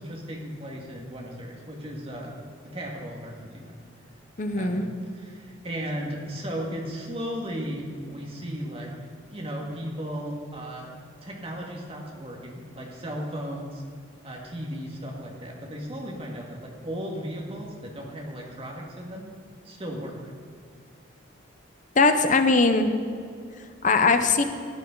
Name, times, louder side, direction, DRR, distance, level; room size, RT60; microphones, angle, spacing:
voice 1, 0.0-2.4 2.6-3.8 4.5-4.9 5.1-9.0 9.3-10.9 11.2-13.8 14.2-19.3 19.6-20.2, equal, 30° right, -1 dB, 2.0 m, -35 dB
voice 2, 4.4-4.9 22.0-22.9 23.8-24.4, left 3 dB, 40° left, 8 dB, 0.7 m, -20 dB
15.5 x 9.3 x 3.9 m, 2.3 s
head